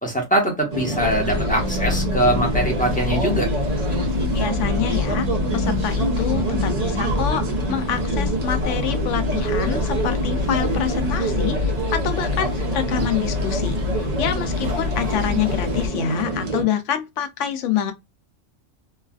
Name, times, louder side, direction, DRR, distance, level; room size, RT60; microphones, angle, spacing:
voice 1, 0.0-3.5, right 1 dB, 5° left, 1.0 m, -22 dB
sound 1, 0.7-16.6, right 2 dB, 35° right, 0.8 m, -26 dB
sound 2, 1.0-15.9, left 4 dB, 65° right, 1.5 m, -27 dB
voice 2, 4.3-5.3 5.5-17.9, left 9 dB, 80° left, 0.9 m, -27 dB
3.1 x 2.3 x 2.3 m
omnidirectional pair, 1.2 m